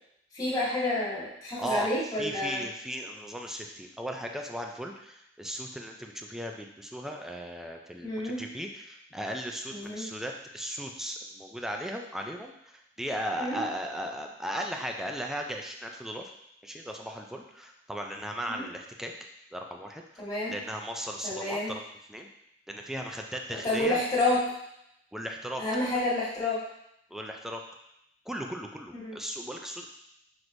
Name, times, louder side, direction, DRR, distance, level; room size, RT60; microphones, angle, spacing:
voice 1, 0.3-2.7 8.0-8.4 9.7-10.1 13.4-13.6 18.5-18.7 20.2-20.5 21.2-21.7 23.5-24.4 25.6-26.6 29.0-29.2, left 2 dB, 20° left, -9 dB, 1.8 m, -29 dB
voice 2, 1.6-16.3 16.6-19.1 19.5-21.8 22.1-22.3 22.7-24.0 25.1-25.6 27.1-27.6 28.3-29.9, equal, ahead, 2 dB, 0.4 m, -37 dB
5.9 x 3.1 x 2.6 m, 0.78 s
head